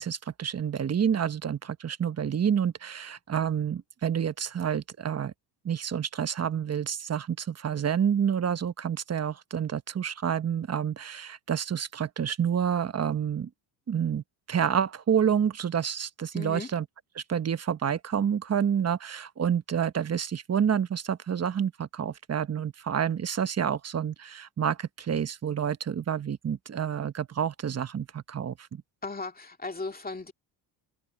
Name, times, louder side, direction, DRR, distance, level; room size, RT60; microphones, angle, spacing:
voice 1, 0.0-5.3 5.6-13.5 13.9-16.8 17.2-28.8, right 8 dB, 35° right, 1.0 m, -28 dB
voice 2, 16.3-16.7 29.0-30.3, left 3 dB, 20° left, 2.4 m, -36 dB
cardioid pair, 80°, 46 cm